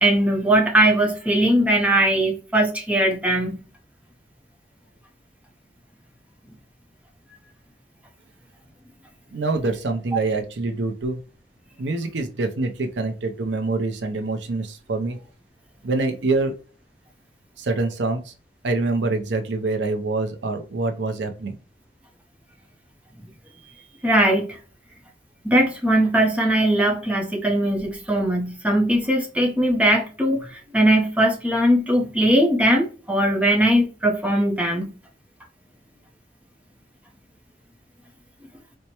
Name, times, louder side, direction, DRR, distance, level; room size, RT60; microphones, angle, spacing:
voice 1, 0.0-3.5 24.0-24.6 25.4-34.9, right 1 dB, 10° right, 0.7 m, -20 dB
voice 2, 9.3-11.2 11.8-15.2 15.8-16.5 17.6-18.3 18.6-21.5, right 3 dB, 85° right, 0.6 m, -25 dB
4.3 x 2.1 x 2.9 m
head